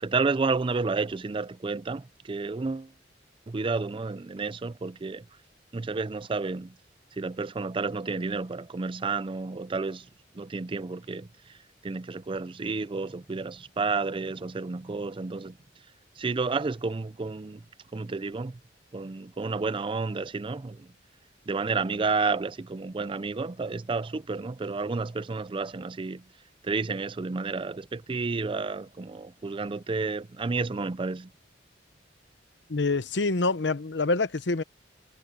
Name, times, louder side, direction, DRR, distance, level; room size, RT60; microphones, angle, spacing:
voice 1, 0.0-2.9 3.5-5.2 5.7-6.8 7.1-10.1 10.3-11.3 11.8-15.6 16.2-17.6 17.9-18.6 18.9-20.9 21.5-26.2 26.6-31.3, right 4 dB, 30° right, 0.4 m, -31 dB
voice 2, 32.7-34.6, left 3 dB, 75° left, 0.9 m, -26 dB
head